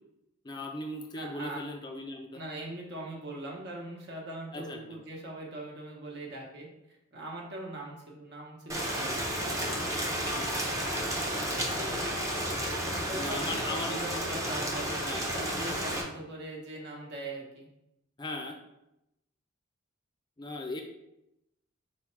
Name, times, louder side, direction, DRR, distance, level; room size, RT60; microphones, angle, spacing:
voice 1, 0.4-2.4 4.5-4.8 10.4-10.7 13.1-14.0 15.0-15.4 18.2-18.6 20.4-20.8, left 2 dB, 20° left, 3 dB, 0.4 m, -38 dB
voice 2, 1.1-1.6 2.3-9.1 11.5-11.8 12.9-15.0 15.3-17.7, right 2 dB, 60° right, -1 dB, 1.0 m, -41 dB
Rain, 8.7-16.0, equal, 15° right, 0.6 m, -32 dB
4.3 x 3.5 x 3.1 m, 0.87 s
head